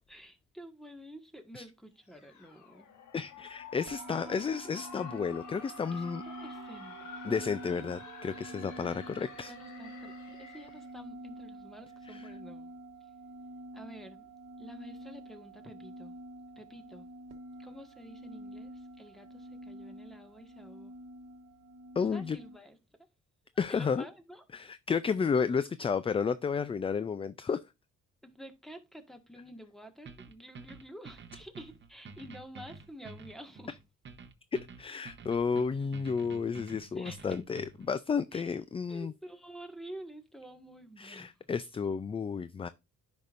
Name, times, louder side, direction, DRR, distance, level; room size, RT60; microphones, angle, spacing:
voice 1, 0.1-2.9 4.1-4.4 5.9-7.2 9.0-12.7 13.7-14.3 14.6-16.1 16.5-17.1 17.6-20.9 22.1-22.8 23.7-24.4 28.2-33.8 37.0-37.4 38.3-38.5 38.9-41.5, right 1 dB, ahead, 1.5 m, -50 dB
sound 1, 2.1-10.9, left 6 dB, 75° left, 1.6 m, -49 dB
voice 2, 3.1-6.2 7.2-9.5 12.1-12.3 22.0-22.4 23.6-24.1 24.5-27.6 34.8-39.1 41.0-42.7, left 5 dB, 20° left, 0.3 m, -32 dB
sound 2, 3.9-22.6, right 1 dB, 60° right, 1.2 m, -47 dB
sound 3, 30.1-37.9, right 4 dB, 40° right, 1.0 m, -49 dB
10.0 x 5.3 x 2.5 m
cardioid pair, 90°, 30 cm